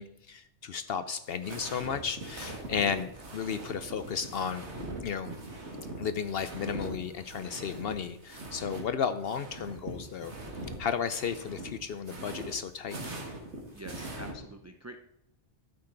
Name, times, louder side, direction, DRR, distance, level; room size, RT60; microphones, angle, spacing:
voice 1, 0.0-4.7 5.0-5.3 6.0-10.3 10.8-13.0, left 7 dB, 65° left, 11 dB, 0.8 m, -34 dB
sound 1, 1.2-8.9 9.1-14.3, right 2 dB, 75° right, 2.1 m, -42 dB
voice 2, 13.7-15.0, right 1 dB, 25° right, 5 dB, 0.3 m, -46 dB
12.0 x 8.8 x 3.9 m, 0.79 s
omnidirectional pair, 1.2 m